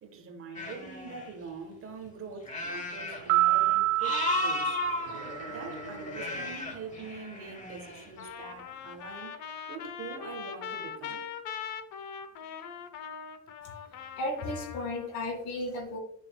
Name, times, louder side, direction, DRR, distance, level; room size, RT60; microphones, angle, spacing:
voice 1, 0.0-4.8 5.5-9.4 9.7-11.2, right 5 dB, 35° right, 1.3 m, -44 dB
sound 1, 0.5-1.3 2.5-3.7 4.0-8.1, left 2 dB, 20° left, 1.1 m, -35 dB
sound 2, 3.3-5.8, right 17 dB, 80° right, 0.7 m, -28 dB
Trumpet, 8.2-15.2, left 7 dB, 55° left, 0.9 m, -41 dB
voice 2, 14.2-16.0, left 2 dB, 80° left, 2.4 m, -34 dB
10.5 x 6.2 x 2.3 m
cardioid pair, 155°, 36 cm